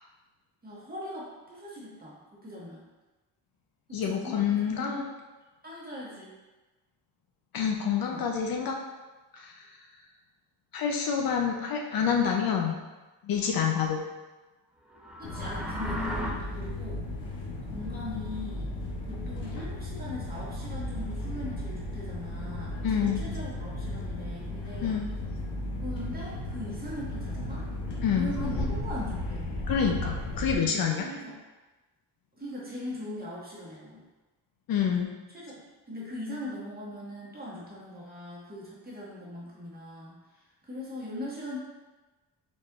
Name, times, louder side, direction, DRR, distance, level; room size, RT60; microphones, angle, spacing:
voice 1, 0.6-2.8 3.9-4.4 4.7-5.1 5.6-6.3 8.0-8.2 13.5-13.8 15.2-17.0 17.7-18.7 19.1-25.0 25.8-27.6 28.1-29.4 31.0-31.4 32.4-34.0 35.3-40.2 40.6-41.6, left 1 dB, 20° right, -7 dB, 1.3 m, -40 dB
voice 2, 3.9-5.0 7.5-8.8 9.3-9.5 10.7-12.8 13.2-14.0 22.8-23.2 24.8-25.1 28.0-28.3 29.7-31.1 34.7-35.1, left 7 dB, 60° left, 2 dB, 0.5 m, -27 dB
sound 1, 14.9-16.3, equal, ahead, 0.4 m, -35 dB
sound 2, 15.2-30.6, left 1 dB, 85° left, 0.9 m, -35 dB
4.1 x 3.2 x 2.4 m, 1.2 s
cardioid pair, 105°, 41 cm